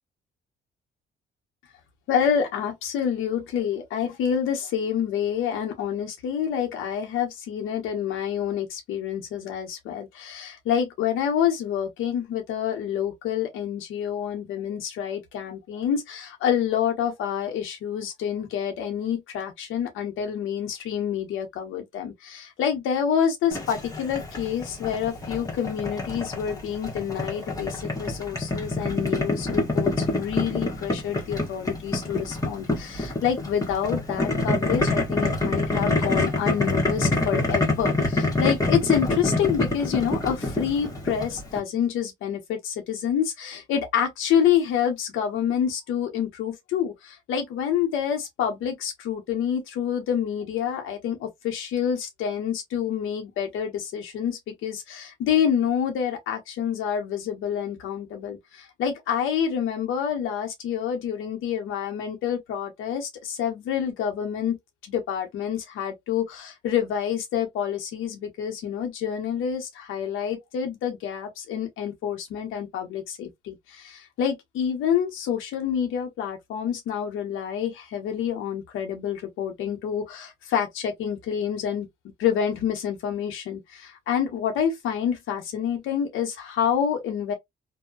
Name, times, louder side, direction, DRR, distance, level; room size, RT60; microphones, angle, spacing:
voice 1, 2.1-64.6 64.9-81.9 82.2-87.3, left 8 dB, 85° left, 1.0 m, -27 dB
Boiling, 23.5-41.6, left 2 dB, 15° left, 1.1 m, -26 dB
2.7 x 2.2 x 2.3 m
cardioid pair, 90°, 20 cm